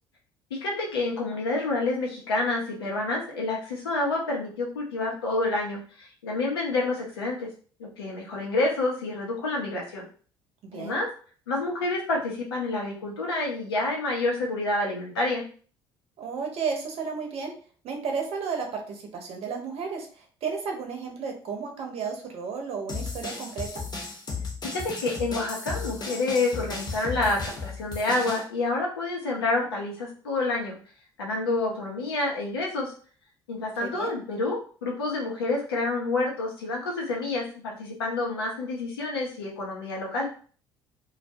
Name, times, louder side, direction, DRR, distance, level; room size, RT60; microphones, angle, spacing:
voice 1, 0.5-7.5 7.8-10.1 10.7-11.1 11.5-15.4 24.7-30.8 31.2-32.9 33.5-40.3, left 2 dB, 85° left, -2 dB, 0.7 m, -28 dB
voice 2, 16.2-17.5 17.8-23.7 33.8-34.1, right 5 dB, 55° right, 2 dB, 0.8 m, -33 dB
sound 1, 22.9-28.4, left 4 dB, 35° left, 0.8 m, -35 dB
2.3 x 2.2 x 2.7 m, 0.42 s
hypercardioid pair, 60°, 12 cm